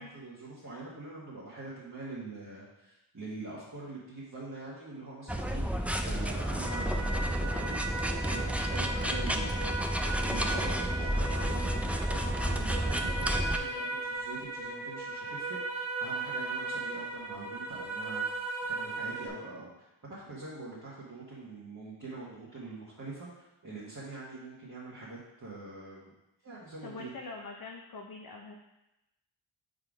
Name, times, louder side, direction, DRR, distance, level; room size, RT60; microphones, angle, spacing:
voice 1, 0.0-18.2 18.7-26.1 26.4-27.1, right 3 dB, 35° right, -8 dB, 1.5 m, -44 dB
sound 1, 5.3-13.6, equal, 5° right, 0.3 m, -31 dB
sound 2, 6.6-19.3, right 3 dB, 75° right, 1.5 m, -37 dB
voice 2, 26.8-28.5, left 3 dB, 45° left, 1 dB, 0.7 m, -43 dB
5.4 x 3.9 x 5.0 m, 0.92 s
wide cardioid pair, 85°, 49 cm